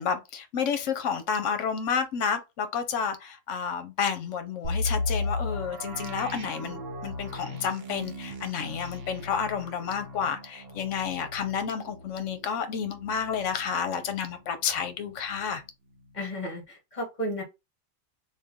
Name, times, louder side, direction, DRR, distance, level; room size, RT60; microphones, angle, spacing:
voice 1, 0.0-15.6, left 7 dB, 70° left, 1.0 m, -30 dB
sound 1, 4.6-14.4 14.7-14.8 15.3-15.6, left 2 dB, 55° right, 0.9 m, -36 dB
voice 2, 16.1-17.4, equal, 35° left, 1.4 m, -33 dB
3.2 x 2.5 x 3.6 m
omnidirectional pair, 1.3 m